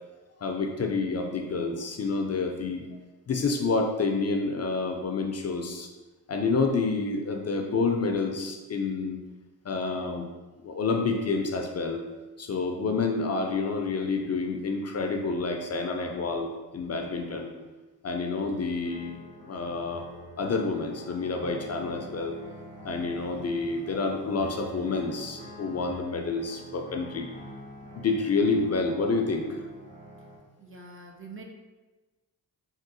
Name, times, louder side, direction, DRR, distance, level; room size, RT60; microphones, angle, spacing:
voice 1, 0.4-2.8 3.3-5.9 6.3-9.2 9.6-10.3 10.6-12.0 12.4-17.5 18.0-20.1 20.4-22.4 22.8-27.3 27.9-29.6, left 4 dB, 40° left, 3 dB, 0.4 m, -28 dB
sound 1, 18.3-30.4, equal, 80° right, 1.1 m, -46 dB
voice 2, 30.6-31.4, right 3 dB, 35° right, 2 dB, 0.4 m, -45 dB
3.5 x 2.3 x 2.6 m, 1.2 s
cardioid pair, 50°, 40 cm